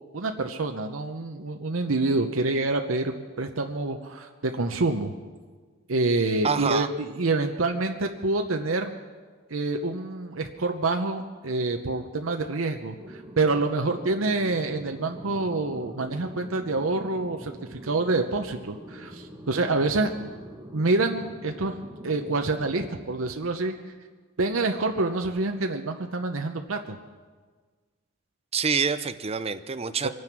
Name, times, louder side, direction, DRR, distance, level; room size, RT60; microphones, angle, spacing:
voice 1, 0.1-5.1 5.9-8.9 9.5-20.1 20.7-21.8 22.0-23.7 24.4-27.0 30.0-30.1, right 3 dB, 80° right, 4 dB, 0.9 m, -27 dB
voice 2, 6.4-6.9 28.5-30.1, right 5 dB, 30° right, 12 dB, 0.6 m, -26 dB
sound 1, 13.0-22.9, equal, 15° right, 1.7 m, -44 dB
24.5 x 9.5 x 6.0 m, 1.5 s
head